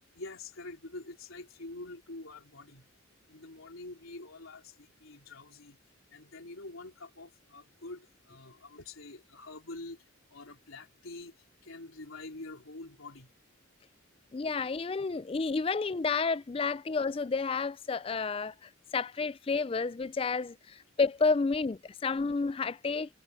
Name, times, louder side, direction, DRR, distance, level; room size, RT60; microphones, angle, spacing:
voice 1, 0.2-2.8 3.3-5.8 6.1-10.0 10.3-11.3 11.6-13.3, left 2 dB, 85° left, 3.8 m, -46 dB
voice 2, 14.3-23.1, left 4 dB, 25° left, 0.3 m, -30 dB
head